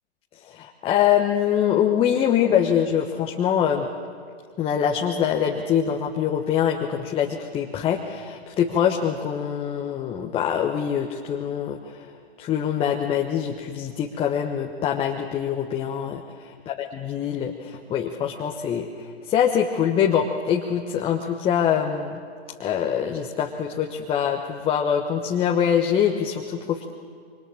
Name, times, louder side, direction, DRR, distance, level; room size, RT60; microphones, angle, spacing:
voice 1, 0.4-3.9 4.6-12.1 12.4-16.2 16.7-22.2 22.6-26.9, left 8 dB, 15° left, 2 dB, 1.1 m, -24 dB
27.0 x 24.0 x 7.3 m, 2.1 s
figure-of-eight pair, 125°, 32 cm